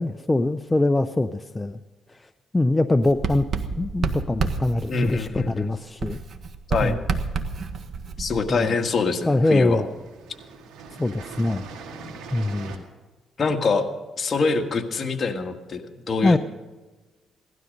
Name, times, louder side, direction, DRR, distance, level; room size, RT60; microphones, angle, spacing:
voice 1, 0.0-1.8 2.1-2.2 2.5-3.5 3.8-6.2 6.8-7.0 8.5-8.7 9.3-9.9 11.0-11.7 12.3-12.8 16.2-16.4, left 2 dB, 15° left, 9 dB, 0.6 m, -23 dB
Writing, 3.0-5.7 6.0-8.7, right 5 dB, 55° right, 1.4 m, -30 dB
voice 2, 4.9-5.7 6.7-7.0 8.2-9.8 13.4-13.8 14.2-16.4, left 4 dB, 45° left, 4 dB, 1.7 m, -24 dB
sound 1, 7.6-8.2 9.1-9.3 9.6-12.8, right 4 dB, 85° right, 2.1 m, -41 dB
17.5 x 12.5 x 5.3 m, 1.2 s
cardioid pair, 90°, 0 cm